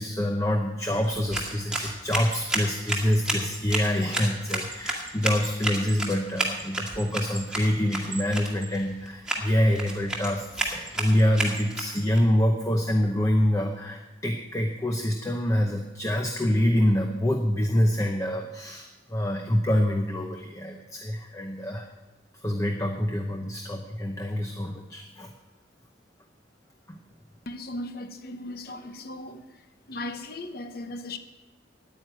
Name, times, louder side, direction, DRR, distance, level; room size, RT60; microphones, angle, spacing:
voice 1, 0.0-21.9 22.3-25.3 26.9-27.0, equal, 15° left, 0.8 m, -26 dB
sound 1, 1.0-12.2, right 2 dB, 5° right, 1.8 m, -32 dB
voice 2, 27.5-29.4 29.9-31.2, left 1 dB, 50° left, 0.9 m, -37 dB
9.5 x 9.4 x 9.0 m
head